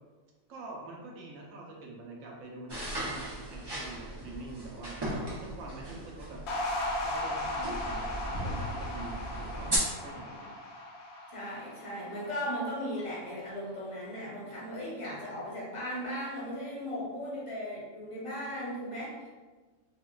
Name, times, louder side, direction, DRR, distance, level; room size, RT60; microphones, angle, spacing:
voice 1, 0.5-4.9 5.2-6.4 7.0-10.6, right 2 dB, 80° right, -2 dB, 1.1 m, -45 dB
sound 1, 2.7-9.8, right 1 dB, 35° right, 0.4 m, -37 dB
sound 2, 6.5-13.0, left 1 dB, 65° left, 0.8 m, -37 dB
voice 2, 11.3-19.3, equal, 30° left, -7 dB, 0.8 m, -37 dB
4.0 x 2.1 x 2.3 m, 1.3 s
omnidirectional pair, 1.4 m